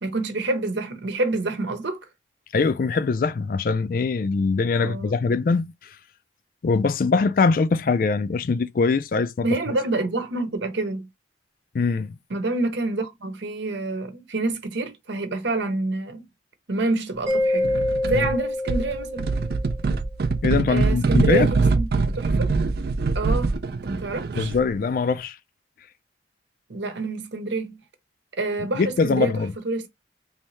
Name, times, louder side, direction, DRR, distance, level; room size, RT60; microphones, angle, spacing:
voice 1, 0.0-2.0 4.8-5.1 9.4-11.1 12.3-16.3 16.7-17.7 18.0-19.3 20.7-22.5 23.1-24.5 26.7-27.8 28.4-29.9, right 2 dB, 75° right, 0.9 m, -27 dB
voice 2, 2.5-5.7 6.6-9.5 11.7-12.2 18.1-18.2 20.4-21.5 24.4-25.4 28.8-29.5, left 4 dB, 50° left, 0.3 m, -22 dB
Mallet percussion, 17.3-19.8, left 1 dB, 15° right, 0.9 m, -26 dB
sound 1, 17.6-18.3 18.7-24.7, right 4 dB, 55° right, 0.4 m, -24 dB
3.3 x 2.7 x 3.1 m
head